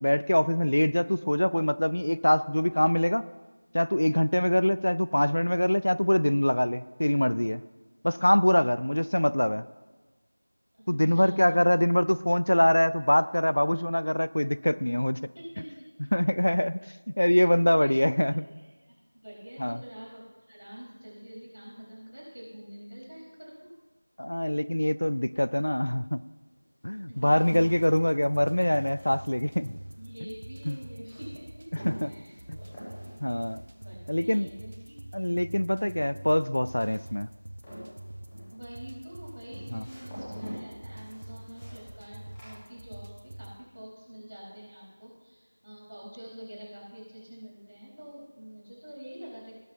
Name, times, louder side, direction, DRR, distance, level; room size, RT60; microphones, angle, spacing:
voice 1, 0.0-3.2 3.7-7.6 8.0-9.6 10.9-15.2 16.1-16.8 17.2-18.5 19.6-19.8 24.2-26.2 26.8-29.7 30.7-30.8 31.9-32.1 32.5-32.6 33.2-33.6 34.1-34.5 35.1-37.3 39.7-39.8, left 1 dB, 55° left, 17 dB, 0.4 m, -24 dB
voice 2, 10.7-11.6 15.3-15.7 16.2-16.3 17.8-17.9 18.3-18.4 18.8-19.0 19.2-23.7 27.2-27.3 30.0-31.7 32.0-32.4 32.9-33.1 33.8-35.2 38.5-49.6, equal, 45° right, -4 dB, 4.3 m, -46 dB
sound 1, 26.1-43.3 43.5-44.1, equal, 5° left, 1.5 m, -47 dB
sound 2, 27.5-43.5, right 1 dB, 25° right, 0.7 m, -45 dB
17.5 x 7.2 x 4.4 m, 1.3 s
figure-of-eight pair, 180°, 0 cm